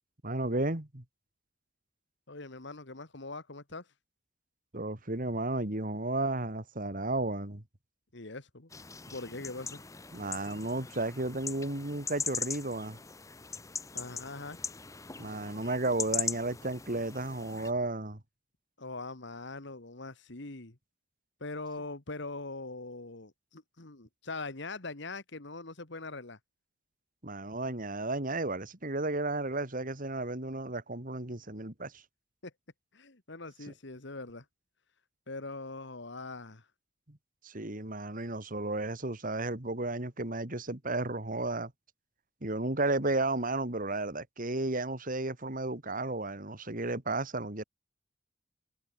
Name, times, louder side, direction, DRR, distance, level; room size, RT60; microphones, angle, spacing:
voice 1, 0.2-1.0 4.7-7.6 10.1-13.0 15.2-18.2 27.2-32.0 37.1-37.2 37.4-41.7 42.4-47.6, right 2 dB, 45° right, 2.4 m, -33 dB
voice 2, 2.3-3.9 8.1-9.8 13.9-14.6 18.8-20.8 21.4-26.4 32.4-32.5 32.9-34.5 35.3-36.7, left 3 dB, 60° left, 1.9 m, -42 dB
sound 1, 8.7-17.7, left 5 dB, 15° left, 0.8 m, -40 dB
head